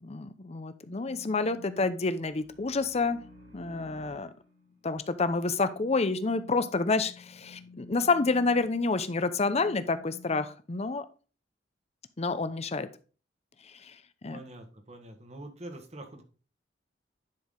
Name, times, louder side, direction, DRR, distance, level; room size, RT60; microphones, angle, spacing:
voice 1, 0.0-3.2 3.5-4.3 4.8-11.0 12.2-12.9 14.2-14.4, left 3 dB, 35° left, 12 dB, 0.7 m, -28 dB
sound 1, 0.7-10.4, left 3 dB, 85° right, 4.4 m, -52 dB
voice 2, 14.3-16.2, right 1 dB, 35° right, 5 dB, 1.4 m, -45 dB
10.5 x 4.6 x 3.7 m, 0.36 s
head